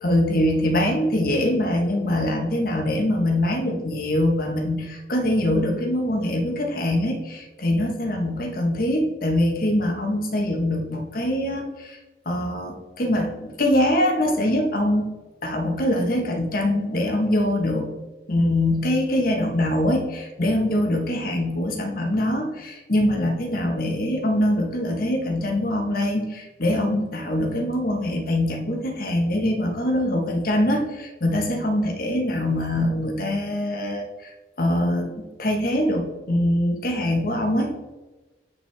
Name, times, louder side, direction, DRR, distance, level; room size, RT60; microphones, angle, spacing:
voice 1, 0.0-12.0 12.2-15.1 15.4-17.9 18.3-34.3 34.6-37.7, left 1 dB, 50° left, 2 dB, 1.2 m, -23 dB
8.2 x 5.5 x 3.4 m, 1.2 s
head